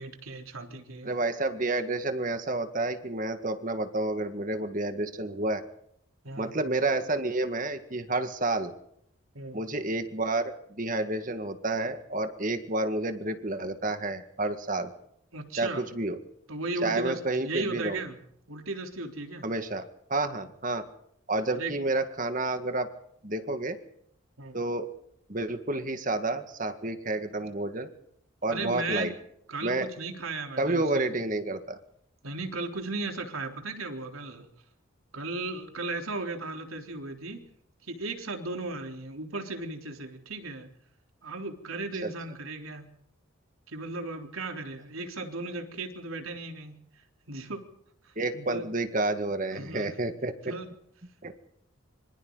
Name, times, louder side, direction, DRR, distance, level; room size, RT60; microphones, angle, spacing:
voice 1, 0.0-1.1 6.2-6.6 9.3-9.6 15.3-15.9 16.5-18.2 18.5-19.5 21.5-21.7 24.4-24.6 28.5-29.1 29.5-31.1 32.2-34.5 35.1-37.4 37.9-40.7 41.2-42.9 43.7-46.8 47.3-47.6 48.3-48.7 49.5-50.0 50.5-50.7, right 3 dB, 85° right, 4 dB, 3.8 m, -36 dB
voice 2, 1.1-5.6 6.4-8.7 9.5-14.9 15.5-16.2 16.8-18.0 19.4-20.8 21.3-22.9 23.2-23.8 24.5-24.9 25.3-27.9 28.4-29.1 29.6-29.9 30.6-31.8 42.0-42.1 48.2-50.5 51.2-51.4, right 2 dB, 40° right, 8 dB, 1.9 m, -30 dB
26.5 x 26.0 x 4.1 m, 0.71 s
head